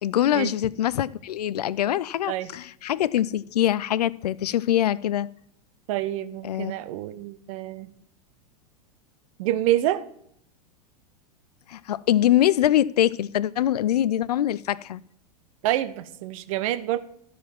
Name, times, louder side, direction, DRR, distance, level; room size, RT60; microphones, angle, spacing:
voice 1, 0.0-5.3 6.4-6.7 11.7-15.0, left 12 dB, 80° left, 0.4 m, -23 dB
voice 2, 5.9-7.9 9.4-10.1 15.6-17.0, right 14 dB, 60° right, 0.8 m, -27 dB
12.5 x 5.1 x 5.9 m
hypercardioid pair, 100°, 20 cm